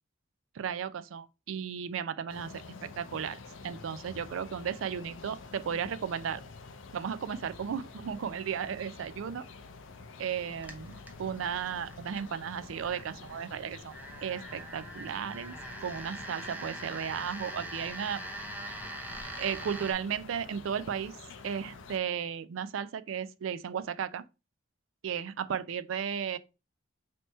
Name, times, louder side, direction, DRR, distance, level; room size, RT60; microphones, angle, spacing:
voice 1, 0.5-2.5 2.8-6.4 6.9-9.4 10.2-13.9 14.2-18.2 19.4-21.2 21.4-24.2 25.0-26.4, right 7 dB, 80° right, 0.4 m, -35 dB
sound 1, 2.3-22.0, left 4 dB, 70° left, 0.5 m, -48 dB
sound 2, 10.6-19.9, right 1 dB, 10° right, 0.6 m, -43 dB
3.4 x 2.7 x 4.1 m
head